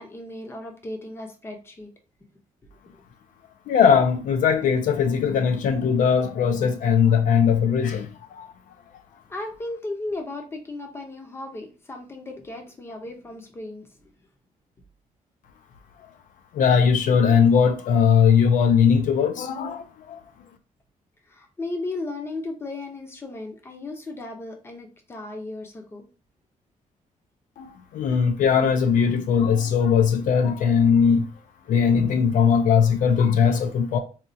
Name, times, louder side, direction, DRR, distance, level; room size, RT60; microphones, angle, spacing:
voice 1, 0.0-1.9 9.3-13.9 21.3-26.1, left 2 dB, 15° left, 0.6 m, -35 dB
voice 2, 3.7-8.5 16.5-20.2 27.6-27.7 27.9-31.3 31.7-34.0, left 7 dB, 65° left, 0.4 m, -19 dB
4.2 x 2.3 x 2.5 m
cardioid pair, 175°, 14 cm